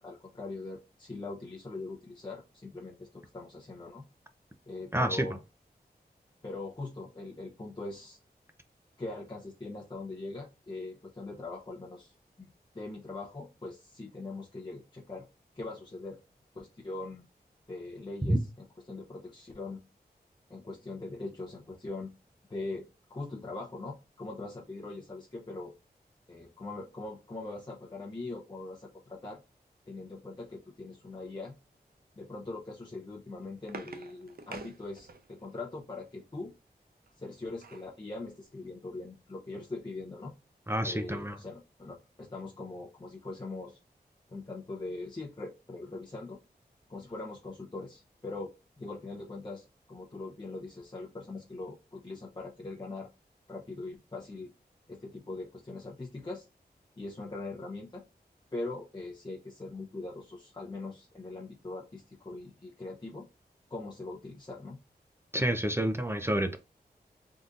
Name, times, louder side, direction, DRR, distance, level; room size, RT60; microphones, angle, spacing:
voice 1, 0.0-4.0 4.7-5.4 6.4-8.2 9.0-12.5 12.7-15.2 15.6-16.2 16.5-17.2 17.7-18.4 18.9-19.8 20.5-22.1 22.5-22.8 23.1-25.7 26.3-29.4 29.9-31.5 32.2-36.5 37.2-40.3 40.8-43.8 44.3-46.4 46.9-48.5 48.8-53.1 53.5-54.5 54.9-56.5 57.0-58.0 58.5-63.2 63.7-64.8, left 2 dB, 25° left, -3 dB, 0.7 m, -41 dB
voice 2, 4.9-5.3 18.2-18.4 40.7-41.4 65.3-66.6, right 1 dB, 15° right, 7 dB, 0.5 m, -28 dB
sound 1, 33.0-35.5 37.1-38.0 38.4-38.5 38.8-39.0, right 4 dB, 65° right, 0.6 m, -47 dB
3.6 x 2.6 x 2.4 m, 0.28 s
cardioid pair, 55°, 17 cm